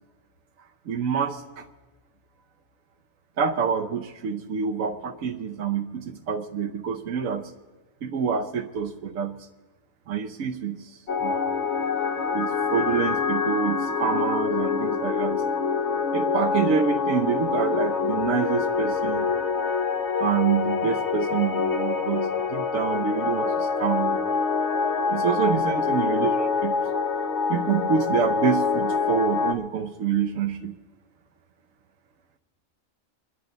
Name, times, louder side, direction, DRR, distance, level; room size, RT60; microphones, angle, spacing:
voice 1, 0.9-1.7 3.4-7.5 8.0-9.5 10.1-11.5 12.3-15.4 16.1-19.3 20.2-24.2 25.1-26.8 27.5-30.7, right 7 dB, 85° right, 3 dB, 1.2 m, -27 dB
sound 1, 11.1-29.5, left 5 dB, 60° left, 1.3 m, -25 dB
26.5 x 11.0 x 4.0 m, 1.3 s
omnidirectional pair, 1.3 m